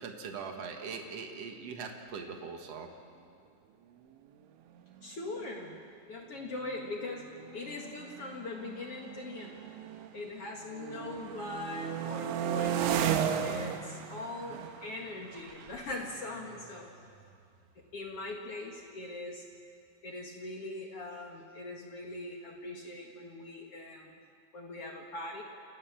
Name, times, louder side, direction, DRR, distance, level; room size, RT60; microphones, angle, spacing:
voice 1, 0.0-2.9, right 5 dB, 65° right, 4 dB, 1.5 m, -41 dB
sound 1, 4.9-5.0 5.3-5.6 6.4-10.3 10.6-17.3, right 8 dB, 85° right, 3.4 m, -36 dB
voice 2, 5.0-5.8 6.1-7.2 7.5-9.6 10.1-13.1 13.4-16.9 17.9-19.4 20.0-24.1 24.5-25.4, left 2 dB, 65° left, 0 dB, 1.5 m, -41 dB
28.5 x 16.5 x 7.3 m, 2.3 s
omnidirectional pair, 5.2 m